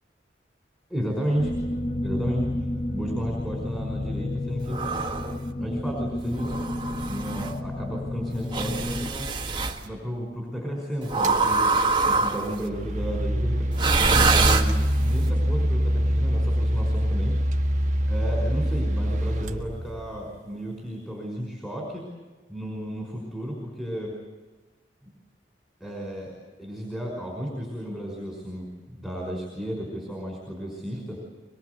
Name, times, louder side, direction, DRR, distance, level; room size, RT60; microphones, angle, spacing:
voice 1, 0.9-1.5 2.0-2.5 2.9-4.8 5.6-6.5 7.1-9.3 9.8-11.8 12.0-13.7 14.2-17.4 18.1-22.0 22.5-24.1 25.0-25.1 25.8-26.3 26.6-31.2, equal, 5° left, -1 dB, 5.2 m, -33 dB
sound 1, 1.4-9.1, left 1 dB, 40° left, 1.4 m, -31 dB
sound 2, 4.7-5.4 6.3-7.5 8.5-9.8 11.1-12.6 13.7-15.1, right 3 dB, 25° right, 1.6 m, -24 dB
sound 3, 11.2-11.4 12.3-20.4, equal, 40° right, 1.5 m, -25 dB
24.5 x 22.5 x 8.1 m, 1.2 s
head